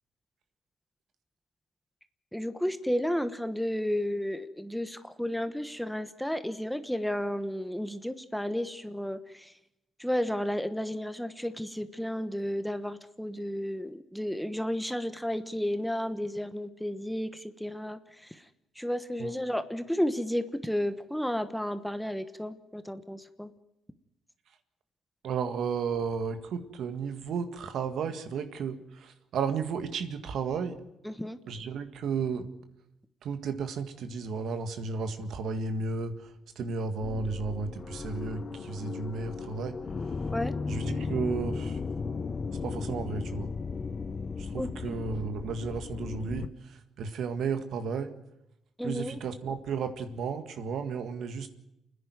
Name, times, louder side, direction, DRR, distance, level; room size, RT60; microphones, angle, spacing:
voice 1, 2.3-9.5 10.0-18.4 18.8-23.5 31.0-31.4 40.3-40.5 44.6-44.9 48.8-49.2, equal, ahead, 11 dB, 1.2 m, -32 dB
voice 2, 25.2-30.8 31.5-32.5 33.2-39.8 40.7-41.8 42.6-43.5 44.4-48.1 48.8-51.5, right 5 dB, 70° right, 9 dB, 1.8 m, -33 dB
sound 1, 37.0-46.5, left 4 dB, 35° left, 1.0 m, -36 dB
28.5 x 10.0 x 9.4 m, 0.86 s
cardioid pair, 90°, 0 cm